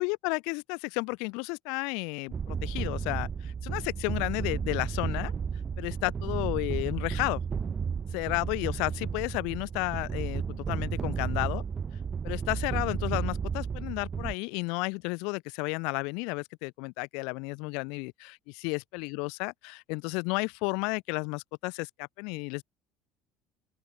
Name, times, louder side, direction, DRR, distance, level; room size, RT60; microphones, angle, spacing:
voice 1, 0.0-5.3 5.8-7.4 8.1-11.6 12.2-22.6, left 32 dB, 80° left, 2.3 m, -32 dB
sound 1, 2.3-14.3, right 6 dB, 25° right, 1.5 m, -33 dB
open air
cardioid pair, 165°, 0 cm